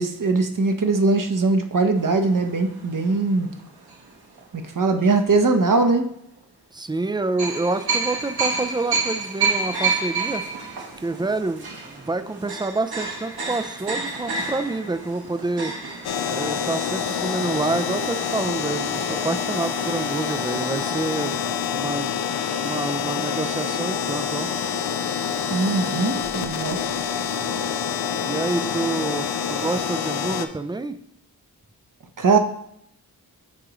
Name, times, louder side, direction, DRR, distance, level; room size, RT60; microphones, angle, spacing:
voice 1, 0.0-3.5 4.7-6.0 25.5-26.8 32.2-32.4, right 3 dB, 55° right, 5 dB, 0.9 m, -20 dB
sound 1, 2.0-4.4 5.0-5.2 7.4-18.1 18.4-18.5 18.8-19.0, right 4 dB, 75° right, 1.4 m, -29 dB
voice 2, 6.7-10.4 11.0-15.7 16.3-21.4 21.7-22.1 22.6-24.5 28.2-31.0, right 3 dB, 10° right, 10 dB, 0.4 m, -27 dB
sound 2, 16.0-30.5, left 7 dB, 75° left, 0.6 m, -27 dB
9.6 x 3.7 x 3.1 m, 0.73 s
cardioid pair, 45°, 39 cm